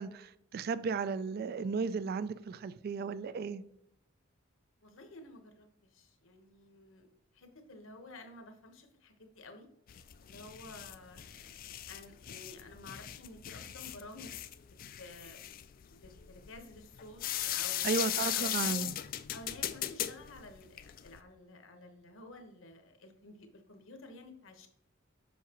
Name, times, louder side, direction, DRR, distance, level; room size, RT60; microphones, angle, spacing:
voice 1, 0.0-3.6 17.8-18.9, right 5 dB, 50° right, 0.3 m, -34 dB
voice 2, 4.8-7.1 7.3-9.7 10.2-11.6 11.9-14.3 15.0-15.5 15.9-18.9 19.3-24.7, left 2 dB, 70° left, 1.1 m, -51 dB
sound 1, 9.9-21.2, left 12 dB, 45° left, 0.3 m, -38 dB
7.2 x 5.9 x 3.0 m
head